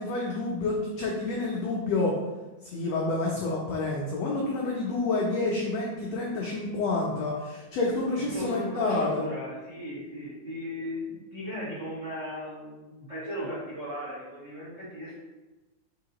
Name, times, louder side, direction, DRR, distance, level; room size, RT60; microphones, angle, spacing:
voice 1, 0.0-2.1 2.6-9.2, left 3 dB, 85° left, -2 dB, 1.4 m, -29 dB
voice 2, 8.2-15.1, equal, 85° right, -10 dB, 0.6 m, -36 dB
4.8 x 3.8 x 2.8 m, 1.1 s
omnidirectional pair, 3.7 m